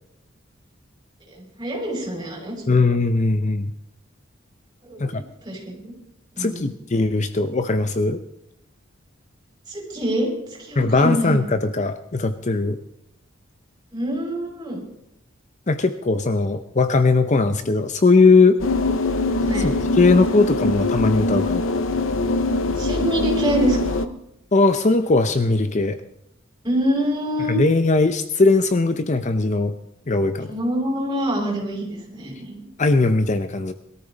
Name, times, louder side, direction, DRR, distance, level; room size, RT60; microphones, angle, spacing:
voice 1, 1.3-2.8 4.8-5.9 6.3-6.7 9.7-11.4 13.9-14.8 19.4-19.7 22.8-24.1 26.6-27.6 30.5-32.7, equal, 20° right, -2 dB, 5.7 m, -26 dB
voice 2, 2.7-3.7 5.0-5.2 6.4-8.2 10.8-12.8 15.7-18.6 19.6-21.6 24.5-26.0 27.5-29.7 30.1-30.5 32.8-33.7, left 3 dB, 35° left, 10 dB, 0.6 m, -19 dB
sound 1, 18.6-24.1, left 2 dB, 70° left, 0.8 m, -22 dB
21.5 x 13.5 x 4.0 m, 0.80 s
head